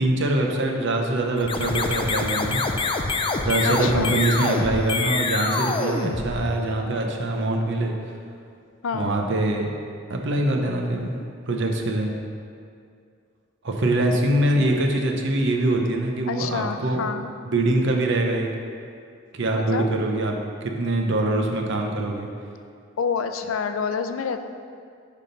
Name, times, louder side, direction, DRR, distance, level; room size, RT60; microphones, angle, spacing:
voice 1, 0.0-2.6 3.4-8.0 8.9-9.7 10.1-11.2 11.5-12.1 13.6-17.0 17.5-18.5 19.3-20.4 20.6-22.3, right 1 dB, 65° right, 1 dB, 0.8 m, -23 dB
sound 1, 1.4-6.8, left 3 dB, 25° left, 0.4 m, -26 dB
voice 2, 3.6-4.2 8.8-9.1 16.3-17.3 19.5-19.9 23.0-24.4, left 5 dB, 90° left, 8 dB, 0.4 m, -28 dB
11.0 x 3.7 x 3.9 m, 2.3 s
head